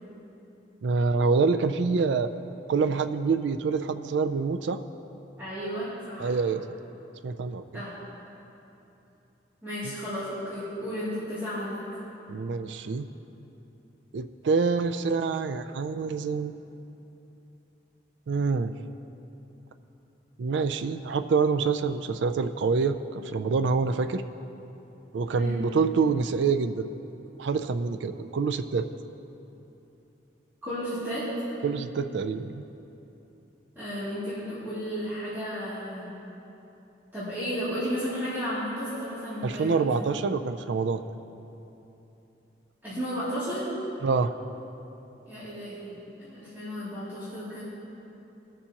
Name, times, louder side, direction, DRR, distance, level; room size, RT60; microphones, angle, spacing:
voice 1, 0.8-2.3 2.7-4.8 6.2-6.6 7.2-7.8 9.8-9.9 12.3-13.1 14.1-16.6 18.3-18.7 20.4-24.2 25.1-26.9 27.4-28.9 31.6-32.6 39.4-41.0 44.0-44.3, right 4 dB, 80° right, 9 dB, 0.4 m, -26 dB
voice 2, 5.4-6.3 7.7-7.9 9.6-11.8 25.3-25.6 30.6-31.2 33.7-36.1 37.1-39.8 42.8-43.7 45.3-45.9 46.2-47.6, equal, 10° right, -15 dB, 2.6 m, -33 dB
20.5 x 7.0 x 2.9 m, 3.0 s
head